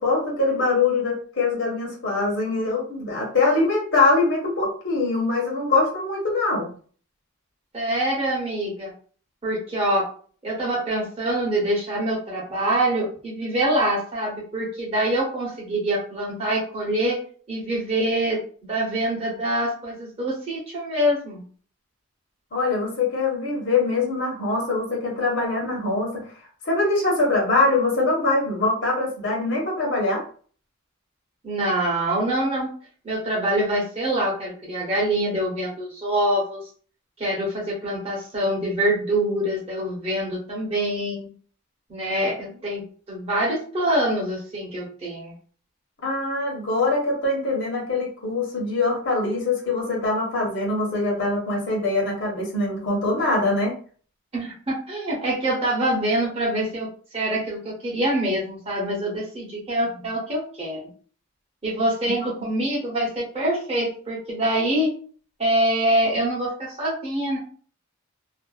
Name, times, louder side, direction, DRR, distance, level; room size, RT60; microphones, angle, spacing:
voice 1, 0.0-6.7 22.5-26.3 26.6-30.2 46.0-53.7, left 3 dB, 55° left, -2 dB, 0.9 m, -23 dB
voice 2, 7.7-8.9 9.4-10.1 10.4-17.2 17.5-18.4 18.7-21.4 31.4-32.7 33.0-36.6 37.2-41.3 41.9-45.3 54.3-56.9 57.1-60.8 61.6-64.9 65.4-67.4, right 1 dB, 25° right, -4 dB, 0.8 m, -25 dB
2.5 x 2.1 x 2.3 m, 0.43 s
head